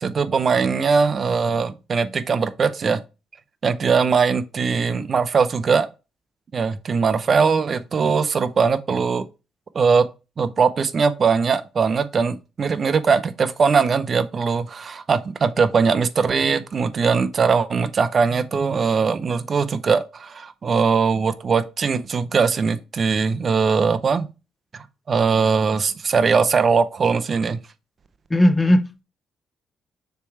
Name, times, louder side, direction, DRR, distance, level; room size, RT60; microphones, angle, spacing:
voice 1, 0.0-3.0 3.6-5.9 6.5-9.3 9.7-10.1 10.4-24.3 25.1-27.6, right 5 dB, 40° right, 0.7 m, -20 dB
voice 2, 28.3-29.0, left 1 dB, 15° left, 0.5 m, -17 dB
6.7 x 3.3 x 4.5 m
cardioid pair, 110°, 0 cm